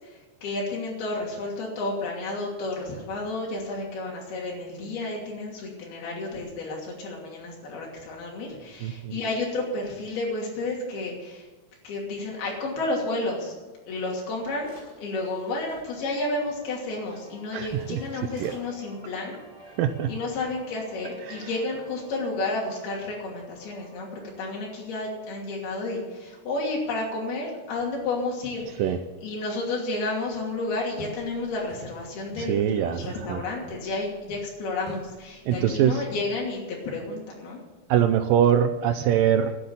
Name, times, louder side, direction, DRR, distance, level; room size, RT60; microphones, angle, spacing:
voice 1, 0.0-11.5 11.8-13.6 13.9-14.7 15.0-19.3 19.6-19.8 20.1-28.8 29.2-37.6, left 2 dB, 80° left, -3 dB, 4.7 m, -31 dB
voice 2, 8.8-9.2 17.5-18.0 18.4-18.5 19.8-20.1 21.3-21.5 28.8-29.0 32.4-33.4 35.5-36.0 37.9-39.6, right 9 dB, 80° right, 9 dB, 2.1 m, -23 dB
sound 1, 14.0-14.1 14.6-15.8 17.2-17.3 17.6-18.6, equal, 20° left, 5.3 m, -52 dB
sound 2, 15.4-26.5, left 1 dB, 15° right, 5.9 m, -52 dB
sound 3, 30.7-30.8 31.0-32.1 32.3-36.5, left 2 dB, 65° left, 2.9 m, -45 dB
12.0 x 9.9 x 8.6 m, 1.2 s
omnidirectional pair, 4.4 m